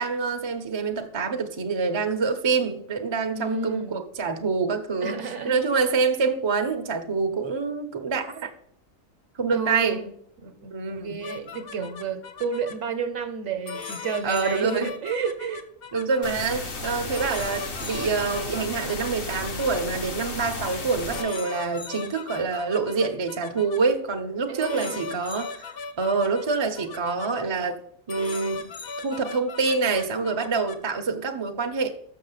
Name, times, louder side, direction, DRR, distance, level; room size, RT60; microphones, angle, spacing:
voice 1, 0.0-5.2 5.4-8.5 9.4-10.0 10.7-11.2 14.2-14.9 15.9-25.5 26.0-27.8 28.1-28.6 29.0-31.9, right 4 dB, 25° right, 0.6 m, -26 dB
voice 2, 3.3-4.0 5.0-5.6 9.5-10.2 10.4-10.7 11.0-15.6 24.5-25.1, right 5 dB, 65° right, 1.2 m, -31 dB
sound 1, 11.2-12.7 13.6-16.3 17.1-19.8 20.6-20.8 21.1-23.8 24.6-27.3 28.1-30.7, left 4 dB, 55° left, 0.8 m, -38 dB
sound 2, 16.2-21.2, left 3 dB, 75° left, 1.6 m, -34 dB
6.5 x 6.3 x 5.7 m
omnidirectional pair, 1.4 m